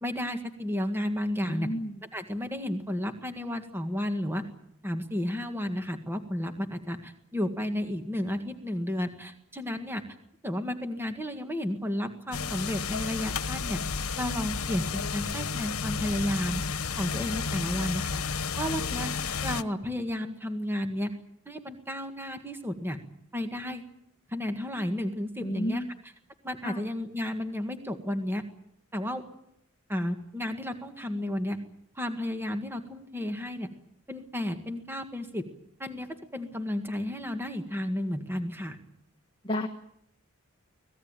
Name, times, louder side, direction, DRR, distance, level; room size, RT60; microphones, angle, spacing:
voice 1, 0.0-1.7 2.1-4.4 4.8-10.0 10.4-13.8 14.2-16.6 17.0-18.2 18.6-19.1 19.4-21.1 21.4-23.0 23.3-23.8 24.3-25.8 26.4-28.4 28.9-29.2 29.9-31.6 31.9-33.7 34.1-35.5 35.8-38.8, left 1 dB, 10° right, 6 dB, 1.8 m, -32 dB
voice 2, 1.4-2.0 25.4-25.9 26.6-26.9 39.4-39.7, left 1 dB, 20° left, 5 dB, 1.3 m, -32 dB
sound 1, 12.3-19.6, left 5 dB, 85° left, 1.1 m, -32 dB
25.0 x 18.5 x 9.0 m, 0.76 s
head